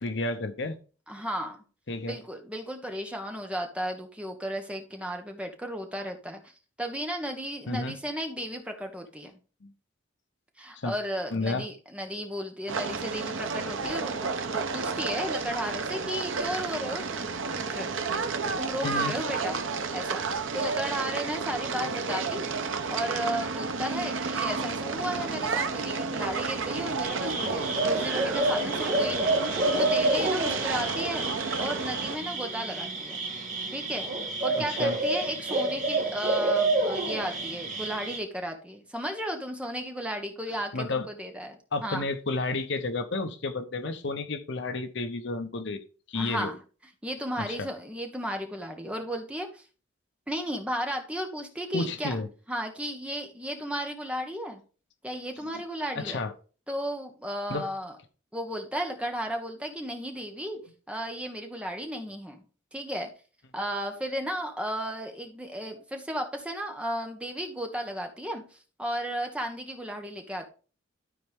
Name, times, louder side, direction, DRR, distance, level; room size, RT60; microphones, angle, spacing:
voice 1, 0.0-0.8 1.9-2.2 7.7-8.0 9.6-9.7 10.7-10.9 11.3-11.7 18.8-19.1 34.6-35.0 40.7-41.1 41.7-45.8 46.1-46.5 47.4-47.7 51.7-52.3 55.9-56.3 57.5-57.7 60.5-60.6, left 3 dB, 65° left, 0.9 m, -31 dB
voice 2, 1.1-1.6 2.1-6.4 6.8-9.4 10.6-17.9 18.6-19.6 19.9-22.5 22.9-29.4 29.8-31.3 31.6-33.2 33.7-34.1 34.4-42.1 46.1-46.6 47.0-49.6 50.3-52.2 52.5-54.6 55.0-56.2 56.7-58.0 58.3-60.6 60.9-62.4 62.7-63.1 63.5-70.5, equal, 5° right, 1.3 m, -34 dB
sound 1, 12.7-32.2, right 4 dB, 80° right, 0.9 m, -31 dB
sound 2, 27.0-38.2, right 2 dB, 40° right, 1.8 m, -29 dB
12.5 x 4.4 x 3.6 m
head